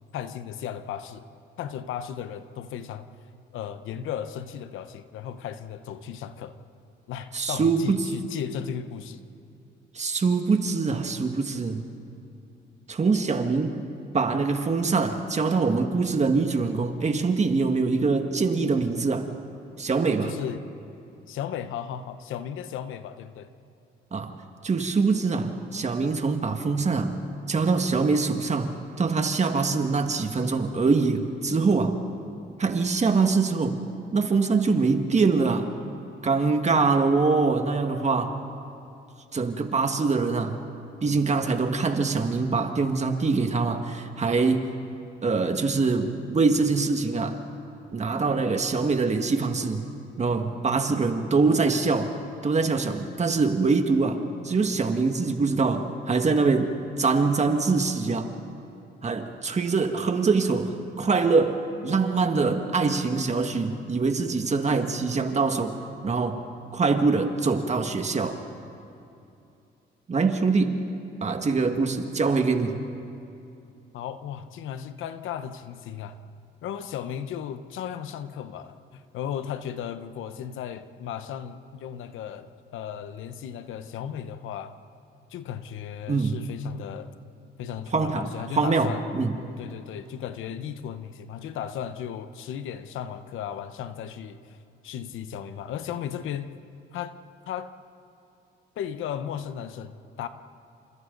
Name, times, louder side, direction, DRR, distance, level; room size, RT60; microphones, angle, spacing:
voice 1, 0.1-1.3 1.6-3.1 3.5-6.6 7.1-9.2 20.2-20.6 21.3-23.5 73.9-76.2 76.6-84.8 85.3-87.1 87.6-89.0 89.6-94.6 94.8-96.5 96.9-97.2 97.5-97.7 98.8-100.3, left 9 dB, 85° left, 10 dB, 1.0 m, -35 dB
voice 2, 7.3-8.1 10.0-11.9 12.9-13.8 14.1-19.3 19.8-20.4 24.1-24.4 24.6-27.2 27.5-32.0 32.6-33.8 34.1-35.7 36.2-38.4 39.3-40.6 41.0-44.7 45.2-47.4 47.9-49.9 50.2-52.1 52.4-58.3 59.0-65.7 66.0-66.4 66.7-68.4 70.1-70.8 71.2-72.8 86.1-86.4 87.9-88.3 88.6-89.3, right 4 dB, 35° right, 6 dB, 1.8 m, -24 dB
29.5 x 27.0 x 4.0 m, 2.7 s
cardioid pair, 90°, 20 cm